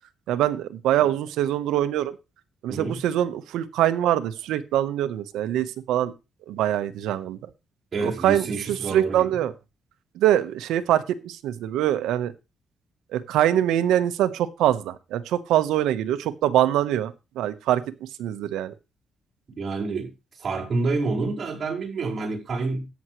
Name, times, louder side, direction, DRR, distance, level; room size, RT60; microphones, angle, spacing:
voice 1, 0.3-2.1 2.6-6.1 6.5-7.4 8.0-9.5 10.1-12.3 13.1-17.8 18.2-18.7, right 12 dB, 90° right, 1.1 m, -24 dB
voice 2, 2.7-3.0 7.9-9.3 19.6-20.1 20.4-22.9, right 3 dB, 45° right, 5.1 m, -28 dB
13.5 x 9.5 x 3.2 m
cardioid pair, 90°, 0 cm